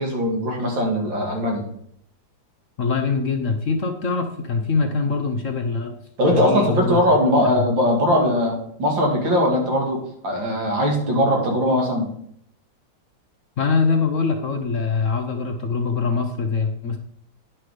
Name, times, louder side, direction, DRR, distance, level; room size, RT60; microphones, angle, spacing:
voice 1, 0.0-1.6 6.2-12.1, equal, 80° right, 1 dB, 2.9 m, -20 dB
voice 2, 2.8-5.9 6.2-7.0 7.4-7.6 13.6-17.0, left 4 dB, 55° left, 5 dB, 1.0 m, -23 dB
10.0 x 6.0 x 4.9 m, 0.68 s
omnidirectional pair, 2.0 m